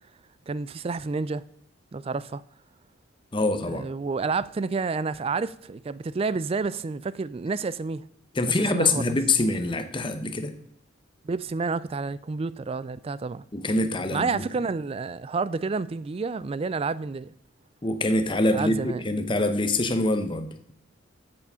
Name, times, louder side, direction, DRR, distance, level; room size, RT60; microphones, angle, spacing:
voice 1, 0.5-1.4 1.9-2.4 3.7-8.0 8.7-9.1 11.2-13.4 14.1-17.3 18.5-19.0, right 4 dB, 30° right, 0.3 m, -29 dB
voice 2, 3.3-3.8 8.3-10.5 13.5-14.4 17.8-20.7, left 2 dB, 25° left, 0.8 m, -25 dB
8.3 x 6.9 x 5.6 m
head